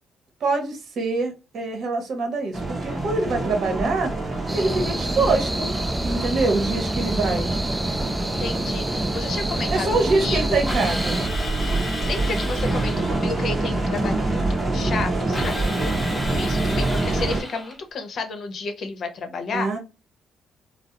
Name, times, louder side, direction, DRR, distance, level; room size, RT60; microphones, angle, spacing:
voice 1, 0.4-4.1 4.5-5.7 6.0-7.5 9.7-11.2 19.5-19.8, right 3 dB, 65° right, 0.8 m, -24 dB
sound 1, 2.5-17.4, right 2 dB, 30° right, 0.8 m, -26 dB
sound 2, 4.5-11.3, right 1 dB, 10° right, 0.4 m, -29 dB
voice 2, 7.1-9.9 10.2-10.7 12.0-19.8, left 3 dB, 55° left, 0.7 m, -32 dB
Drill, 10.7-13.4 15.3-17.8, left 1 dB, 20° left, 0.9 m, -34 dB
2.3 x 2.0 x 2.9 m
cardioid pair, 90°, 0 cm